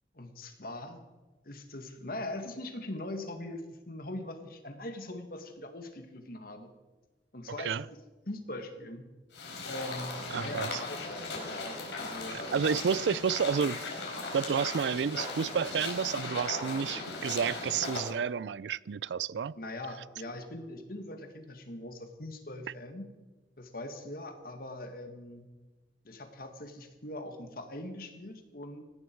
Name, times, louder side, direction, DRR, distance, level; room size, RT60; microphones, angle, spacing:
voice 1, 0.1-1.0 1.4-6.7 7.3-7.8 8.3-9.1 9.7-11.0 11.3-12.4 19.5-23.1 23.6-25.5 26.0-28.8, left 1 dB, 55° left, 1.9 m, -41 dB
sound 1, 9.3-18.1, left 3 dB, 85° left, 4.3 m, -38 dB
voice 2, 10.3-10.8 12.5-13.8 14.3-19.6, right 6 dB, 90° right, 0.4 m, -30 dB
18.5 x 15.5 x 4.6 m
head